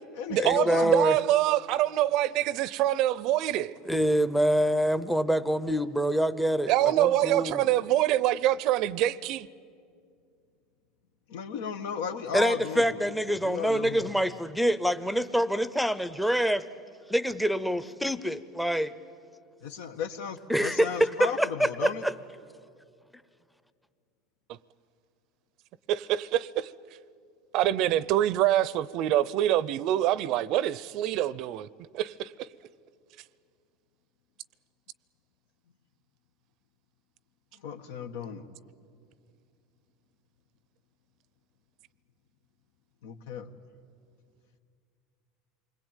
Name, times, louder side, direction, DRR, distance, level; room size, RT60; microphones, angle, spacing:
voice 1, 0.0-0.5 7.6-7.7 11.3-14.1 19.6-22.0 37.6-38.5 43.0-43.5, left 7 dB, 85° left, 1.5 m, -35 dB
voice 2, 1.0-3.7 6.7-9.5 25.9-26.7 27.5-31.7 31.9-32.5, right 13 dB, 50° right, 0.6 m, -25 dB
voice 3, 3.8-7.6 12.3-16.7 17.1-18.9 20.5-22.1, equal, ahead, 0.7 m, -26 dB
28.0 x 21.5 x 9.1 m
supercardioid pair, 140°, 0 cm